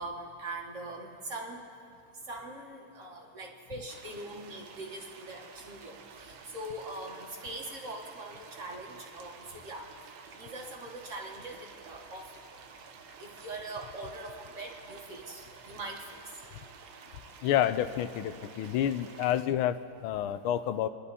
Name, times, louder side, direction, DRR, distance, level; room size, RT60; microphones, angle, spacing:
voice 1, 0.0-1.6 2.3-9.9 10.3-12.3 13.2-16.2, right 2 dB, 40° right, 1 dB, 1.8 m, -42 dB
sound 1, 3.9-19.5, right 5 dB, 70° right, 1.6 m, -51 dB
voice 2, 17.4-20.9, left 11 dB, 85° left, 13 dB, 1.5 m, -29 dB
25.5 x 11.5 x 4.2 m, 2.3 s
omnidirectional pair, 2.3 m